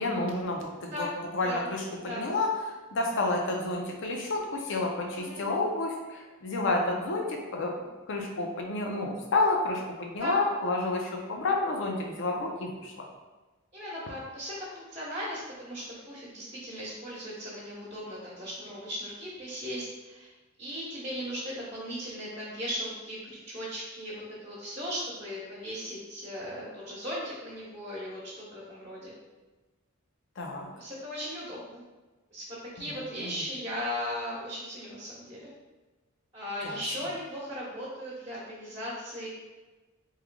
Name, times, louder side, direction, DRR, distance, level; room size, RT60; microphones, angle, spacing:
voice 1, 0.0-13.1 30.4-30.7 32.8-33.3 36.6-36.8, left 2 dB, 60° left, 1 dB, 0.6 m, -30 dB
voice 2, 5.1-5.4 10.2-10.4 13.7-20.3 20.6-23.2 23.5-29.1 30.7-31.8 32.3-35.5 36.3-39.3, equal, 30° right, -10 dB, 1.1 m, -37 dB
3.6 x 3.1 x 2.3 m, 1.2 s
head